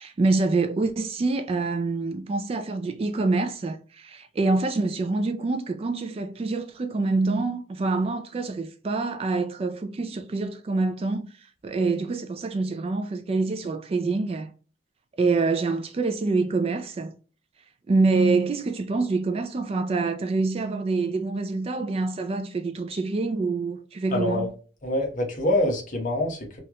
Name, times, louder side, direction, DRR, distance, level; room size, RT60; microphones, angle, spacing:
voice 1, 0.0-11.3 11.6-14.5 15.2-17.1 17.9-24.5, right 3 dB, 30° right, 0.3 m, -26 dB
voice 2, 24.1-24.5 24.8-26.6, left 1 dB, 45° left, 1.0 m, -25 dB
3.2 x 2.3 x 2.8 m
head